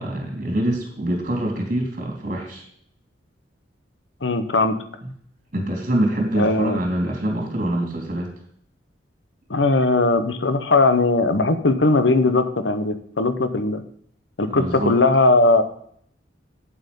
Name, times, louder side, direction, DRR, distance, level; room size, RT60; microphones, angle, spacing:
voice 1, 0.0-2.6 5.5-8.3 14.5-14.9, right 1 dB, 45° right, 1 dB, 3.4 m, -25 dB
voice 2, 4.2-4.8 6.4-6.8 9.5-13.8 14.4-15.6, left 3 dB, 85° left, 11 dB, 1.0 m, -19 dB
8.9 x 7.8 x 5.4 m, 0.64 s
head